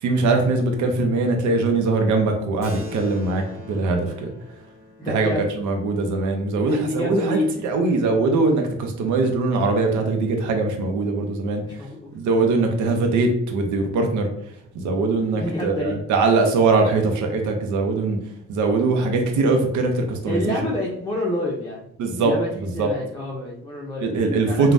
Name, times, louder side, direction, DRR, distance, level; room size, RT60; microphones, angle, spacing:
voice 1, 0.0-4.3 5.0-11.6 12.1-14.3 14.7-18.2 18.5-20.5 22.0-22.3 22.6-22.9 24.0-24.7, right 3 dB, 75° right, 4 dB, 0.6 m, -21 dB
Keyboard (musical), 2.6-7.5, left 3 dB, 45° right, 1.3 m, -43 dB
voice 2, 5.0-5.4 6.6-7.5 11.6-12.1 15.3-15.9 20.3-21.8 22.2-24.7, left 1 dB, 15° left, -4 dB, 0.5 m, -28 dB
3.2 x 2.2 x 2.5 m, 0.75 s
cardioid pair, 90°, 30 cm